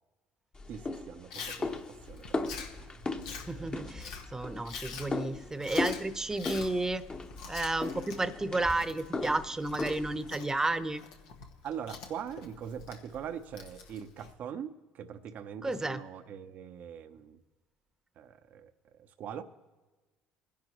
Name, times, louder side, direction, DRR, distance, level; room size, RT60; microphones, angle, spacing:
sound 1, 0.5-10.3, left 3 dB, 30° left, 1.1 m, -38 dB
voice 1, 0.7-2.4 2.7-3.7 11.6-17.4 18.2-18.7 19.2-19.4, right 8 dB, 60° right, 9 dB, 0.7 m, -42 dB
Chewing mastication, 1.3-14.3, left 5 dB, 90° left, 1.2 m, -46 dB
voice 2, 3.5-7.0 7.5-11.0 15.6-16.0, right 2 dB, 15° right, 12 dB, 0.9 m, -32 dB
23.5 x 10.5 x 3.0 m, 1.2 s
supercardioid pair, 75°, 3 cm